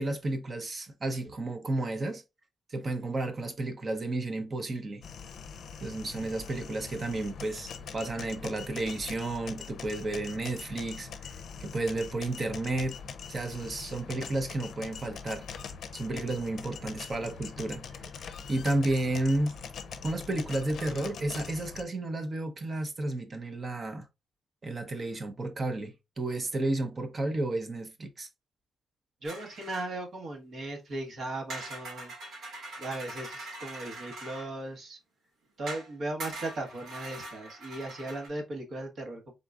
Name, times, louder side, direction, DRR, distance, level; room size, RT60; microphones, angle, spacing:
voice 1, 0.0-2.2 2.7-5.0 5.8-11.3 11.6-13.0 13.3-15.5 15.9-18.1 18.5-19.5 20.0-24.1 24.6-28.3, right 2 dB, 35° right, 0.7 m, -32 dB
sound 1, 5.0-21.8, left 6 dB, 70° left, 0.5 m, -43 dB
voice 2, 29.2-32.1 32.8-35.0 35.6-39.3, right 2 dB, 60° right, 1.2 m, -37 dB
sound 2, 29.2-29.9 31.5-34.5 35.7-35.9 36.2-38.3, right 2 dB, 90° right, 2.1 m, -42 dB
3.8 x 3.7 x 2.3 m
cardioid pair, 130°, 0 cm